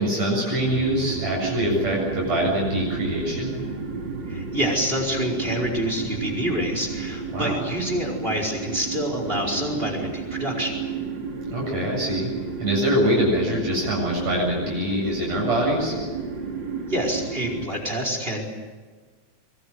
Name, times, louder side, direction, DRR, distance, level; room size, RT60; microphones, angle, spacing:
voice 1, 0.0-3.6 7.3-7.6 11.5-12.3 12.6-15.9, equal, 60° right, -3 dB, 9.2 m, -24 dB
sound 1, 0.5-17.7, right 4 dB, 35° right, 3.2 m, -32 dB
voice 2, 4.3-10.8 16.9-18.4, equal, 15° right, 1 dB, 4.8 m, -27 dB
25.0 x 23.0 x 7.9 m, 1.4 s
omnidirectional pair, 3.5 m